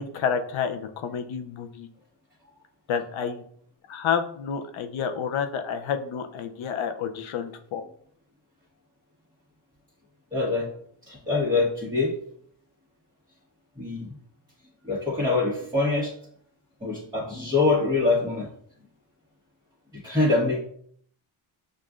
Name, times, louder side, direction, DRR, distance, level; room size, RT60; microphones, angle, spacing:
voice 1, 0.0-1.9 2.9-3.4 3.9-7.8, left 7 dB, 75° left, 7 dB, 0.6 m, -29 dB
voice 2, 10.3-10.7 11.1-12.1 13.8-14.1 14.8-16.1 16.8-18.5 20.0-20.6, left 3 dB, 10° right, -8 dB, 1.2 m, -24 dB
6.5 x 2.5 x 2.4 m, 0.64 s
cardioid pair, 100°, 48 cm